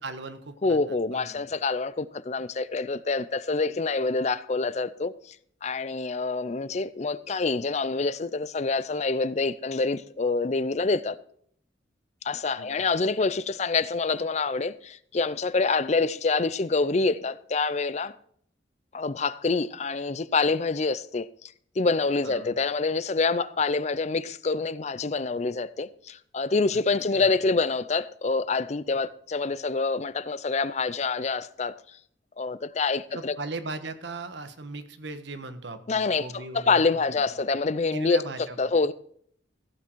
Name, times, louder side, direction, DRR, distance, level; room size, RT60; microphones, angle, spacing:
voice 1, 0.0-1.4 12.5-12.8 22.2-22.5 27.1-27.3 33.1-37.2 37.9-38.7, right 3 dB, 65° right, 1.4 m, -38 dB
voice 2, 0.6-5.4 5.6-11.2 12.2-18.1 18.9-32.0 32.4-33.3 35.9-38.2 38.6-38.9, left 4 dB, 35° left, 0.5 m, -26 dB
15.5 x 8.6 x 4.6 m
head